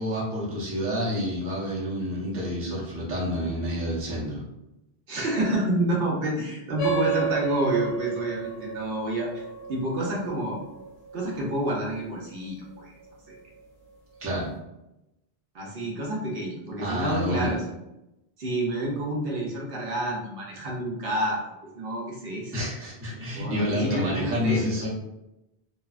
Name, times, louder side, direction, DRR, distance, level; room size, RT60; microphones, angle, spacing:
voice 1, 0.0-4.4 14.2-14.5 16.8-17.5 22.5-24.9, equal, 15° right, -6 dB, 0.5 m, -28 dB
voice 2, 5.1-9.4 9.7-10.6 11.1-12.9 13.3-13.4 15.5-17.6 18.4-22.5 23.1-24.8, right 1 dB, 65° right, -3 dB, 0.8 m, -29 dB
sound 1, 6.8-11.7, right 6 dB, 55° left, 0.8 m, -32 dB
2.6 x 2.1 x 2.3 m, 0.91 s
omnidirectional pair, 1.1 m